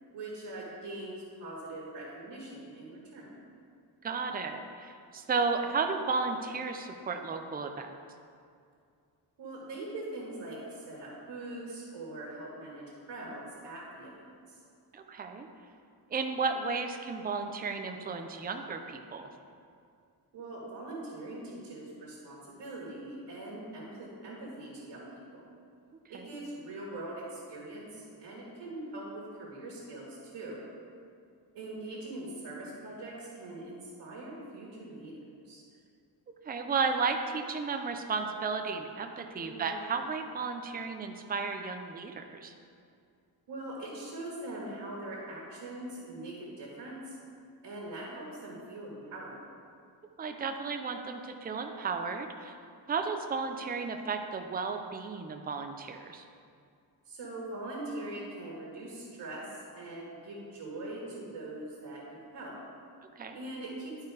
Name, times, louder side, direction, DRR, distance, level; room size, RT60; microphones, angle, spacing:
voice 1, 0.1-3.3 9.4-14.6 20.3-25.5 26.1-30.6 31.5-35.6 39.4-39.8 43.5-47.2 47.6-49.4 57.1-62.6 63.3-63.9, right 2 dB, 90° right, -4 dB, 1.9 m, -42 dB
voice 2, 4.0-7.9 14.9-15.5 16.1-19.3 26.1-26.3 36.4-42.5 50.2-52.5 52.9-56.2 63.2-63.4, right 4 dB, 20° right, 5 dB, 0.5 m, -33 dB
11.5 x 4.6 x 4.8 m, 2.3 s
wide cardioid pair, 145°, 41 cm